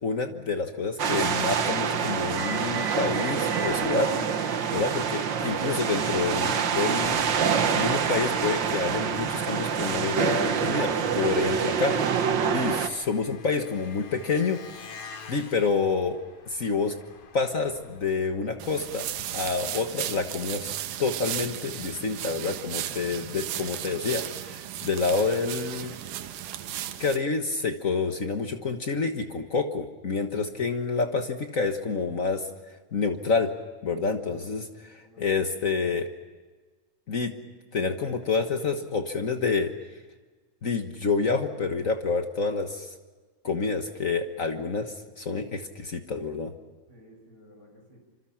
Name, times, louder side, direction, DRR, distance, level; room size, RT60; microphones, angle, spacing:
voice 1, 0.0-4.1 4.7-7.2 7.7-14.6 15.3-16.9 17.3-19.1 19.3-20.7 21.0-25.9 27.0-32.5 32.9-33.5 33.8-36.1 37.1-37.3 37.7-39.7 40.6-42.9 43.4-46.5, left 4 dB, 60° left, 6 dB, 0.8 m, -28 dB
sound 1, 1.0-12.9, right 7 dB, 55° right, 1.3 m, -26 dB
Engine, 7.0-19.2, left 5 dB, 85° left, 4.2 m, -49 dB
sound 2, 18.6-27.2, right 11 dB, 85° right, 2.5 m, -35 dB
voice 2, 22.9-23.7 30.4-30.7 34.2-34.7 35.0-35.4 46.9-48.0, equal, 30° left, 2 dB, 7.4 m, -53 dB
26.5 x 26.0 x 5.8 m, 1.4 s
omnidirectional pair, 3.7 m